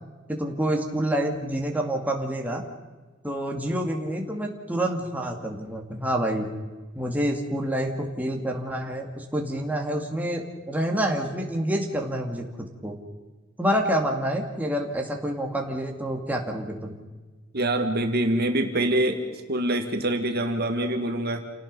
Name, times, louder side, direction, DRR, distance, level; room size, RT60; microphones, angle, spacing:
voice 1, 0.3-2.6 3.2-6.5 6.9-12.5 12.8-13.0 13.6-17.0, right 1 dB, 10° right, 1 dB, 2.3 m, -27 dB
voice 2, 17.5-19.2 19.5-21.4, right 1 dB, 55° right, 5 dB, 1.9 m, -25 dB
28.5 x 18.5 x 5.5 m, 1.3 s
head